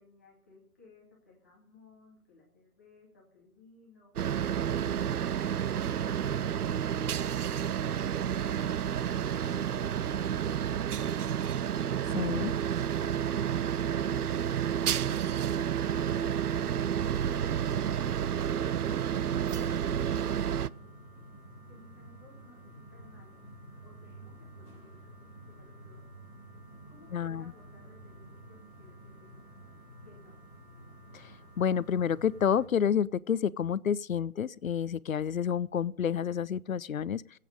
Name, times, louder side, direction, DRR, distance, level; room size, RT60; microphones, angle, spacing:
voice 1, 0.0-5.1 8.8-9.7 10.4-11.6 12.4-14.5 16.0-16.6 17.0-21.0 21.5-23.3 23.8-25.2 25.5-26.0 26.9-29.3 30.0-30.4, left 3 dB, 10° left, 1.2 m, -58 dB
sound 1, 4.2-20.7, right 9 dB, 90° right, 0.7 m, -30 dB
voice 2, 12.1-12.5 27.1-27.5 31.1-31.3 31.6-37.4, left 8 dB, 65° left, 0.6 m, -29 dB
sound 2, 15.3-32.7, right 1 dB, 20° right, 5.8 m, -50 dB
20.5 x 8.5 x 5.3 m
hypercardioid pair, 180°, 44 cm